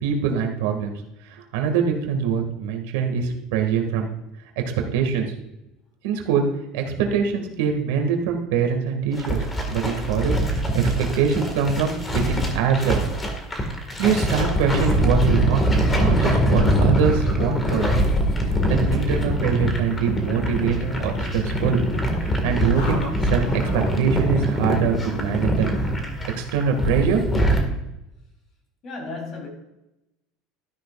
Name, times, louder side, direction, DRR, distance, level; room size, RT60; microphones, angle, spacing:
voice 1, 0.0-0.9 1.3-4.1 4.9-5.3 6.0-6.4 6.7-9.4 9.7-13.0 13.6-13.7 14.0-15.7 16.0-17.9 18.7-21.8 22.4-25.7 26.4-27.2, right 6 dB, 90° right, 3 dB, 2.0 m, -23 dB
sound 1, 9.1-27.6, equal, 15° left, 1.9 m, -23 dB
sound 2, 15.2-15.4 16.4-16.6 17.7-17.9 18.9-19.1, equal, ahead, 2.7 m, -35 dB
sound 3, 17.3-24.2, left 1 dB, 85° left, 4.1 m, -39 dB
voice 2, 28.8-29.5, left 3 dB, 35° left, 2 dB, 3.5 m, -35 dB
13.0 x 11.0 x 2.5 m, 0.91 s
cardioid pair, 160°, 0 cm